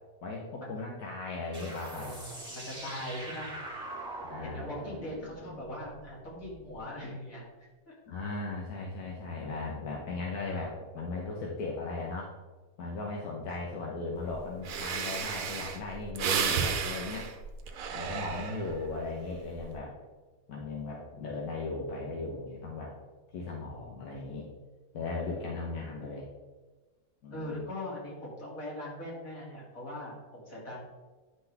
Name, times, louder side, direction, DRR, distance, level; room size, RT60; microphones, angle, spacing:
voice 1, 0.2-2.2 4.2-5.0 8.1-12.3 12.8-17.3 17.9-19.9 20.5-22.9 23.3-24.5 24.9-26.2 27.2-27.6, left 3 dB, 85° left, -3 dB, 1.6 m, -37 dB
sound 1, 1.5-6.8, right 1 dB, 30° right, 1.8 m, -43 dB
voice 2, 1.9-3.5 4.4-7.9 13.3-13.4 18.1-18.4 27.3-30.8, left 1 dB, 65° left, -5 dB, 3.0 m, -41 dB
Breathing, 14.3-14.4 14.6-18.9 19.4-19.7, right 6 dB, 70° right, 1.1 m, -33 dB
10.5 x 5.8 x 3.4 m, 1.3 s
omnidirectional pair, 1.6 m